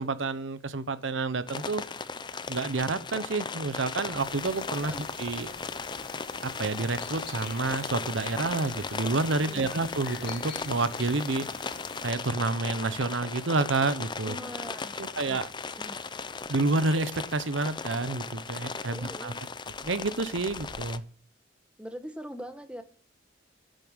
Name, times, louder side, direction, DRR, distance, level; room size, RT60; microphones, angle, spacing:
voice 1, 0.0-1.8 2.5-4.9 5.2-5.5 6.4-11.7 12.0-14.4 15.0-15.5 16.5-19.3 19.8-21.0, right 3 dB, 85° right, 0.9 m, -29 dB
sound 1, 1.5-21.0, left 4 dB, 25° left, 0.6 m, -37 dB
sound 2, 4.2-12.1, left 4 dB, 55° left, 2.3 m, -46 dB
voice 2, 9.4-9.8 14.2-15.4 15.8-16.0 18.9-19.4 21.8-22.8, equal, 5° right, 1.2 m, -42 dB
11.0 x 7.2 x 8.9 m
head